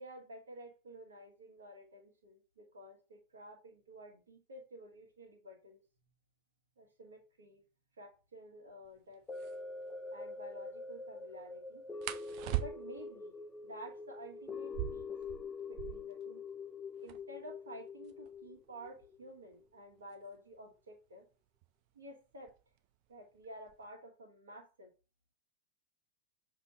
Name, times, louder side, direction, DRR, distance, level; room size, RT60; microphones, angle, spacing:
voice 1, 0.0-5.8 6.8-7.6 8.0-9.2 10.1-11.8 12.6-13.3 13.6-15.1 15.7-16.4 17.0-21.3 21.9-22.5 23.1-24.9, equal, 70° right, 1.5 m, -52 dB
sound 1, 8.8-8.9 9.3-9.6 12.0-13.1 14.6-16.2 16.5-16.6 16.8-17.4 18.0-20.6 21.6-21.9 22.3-22.8 23.1-23.9, right 15 dB, 45° right, 0.5 m, -41 dB
sound 2, 9.3-19.6 20.1-20.2, left 4 dB, 15° left, 0.5 m, -45 dB
6.6 x 3.1 x 4.9 m
figure-of-eight pair, 90°, 0 cm